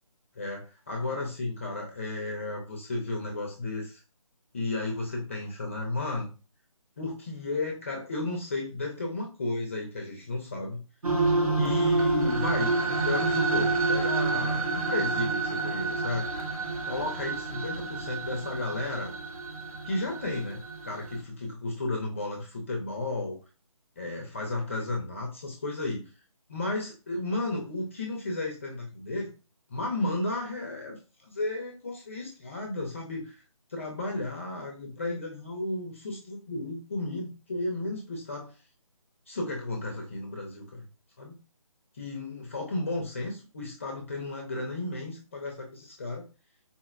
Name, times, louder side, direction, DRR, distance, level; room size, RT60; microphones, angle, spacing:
voice 1, 0.4-4.0 4.5-6.3 7.0-10.8 11.6-12.7 13.0-16.3 16.9-19.1 19.8-23.4 24.0-26.0 26.5-29.3 29.7-33.4 33.7-38.5 39.3-40.9 41.2-41.3 41.9-46.2, left 2 dB, 25° left, 1 dB, 0.4 m, -33 dB
sound 1, 11.0-21.2, right 3 dB, 85° right, 0.8 m, -28 dB
3.9 x 2.0 x 2.4 m, 0.32 s
figure-of-eight pair, 160°, 18 cm